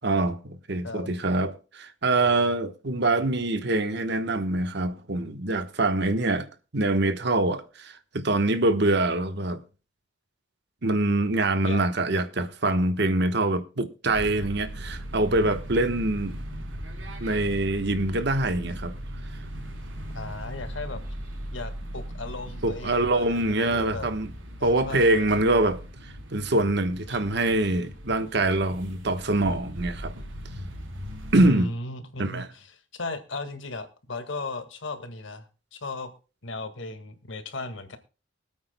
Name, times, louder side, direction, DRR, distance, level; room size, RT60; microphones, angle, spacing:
voice 1, 0.0-6.5 6.7-9.6 10.8-16.4 17.2-18.9 22.6-24.3 24.6-25.8 26.3-30.1 31.3-31.7 32.2-32.5, right 2 dB, 60° right, 1.2 m, -24 dB
sound 1, 14.1-31.5, equal, 90° right, 3.4 m, -38 dB
voice 2, 20.1-21.0 21.5-24.1 24.6-25.5 31.4-35.4 35.7-36.1 36.4-38.0, left 2 dB, 75° left, 1.9 m, -36 dB
24.0 x 8.7 x 2.2 m
head